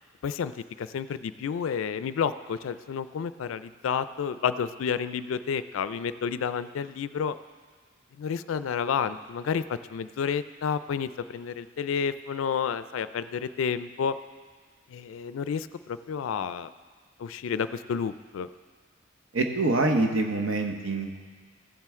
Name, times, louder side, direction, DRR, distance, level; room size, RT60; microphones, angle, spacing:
voice 1, 0.8-7.4 8.2-14.1 14.9-16.7 17.2-18.5, left 7 dB, 80° left, 13 dB, 0.3 m, -30 dB
voice 2, 19.3-21.2, right 2 dB, 80° right, 4 dB, 0.9 m, -25 dB
14.5 x 7.5 x 3.6 m, 1.5 s
head